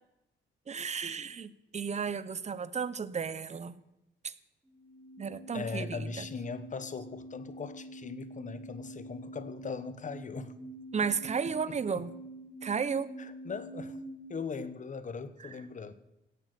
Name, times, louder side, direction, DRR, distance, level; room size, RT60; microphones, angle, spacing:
voice 1, 0.7-3.8 4.2-4.3 5.2-6.3 10.9-12.1 12.6-13.1 15.4-15.7, right 6 dB, 35° right, 16 dB, 0.8 m, -34 dB
sound 1, 4.6-14.3, right 1 dB, ahead, 5.4 m, -46 dB
voice 2, 5.5-10.5 11.7-11.8 13.2-14.0 14.3-15.9, left 5 dB, 40° left, 13 dB, 1.1 m, -39 dB
17.0 x 8.2 x 6.8 m, 0.92 s
cardioid pair, 105°, 20 cm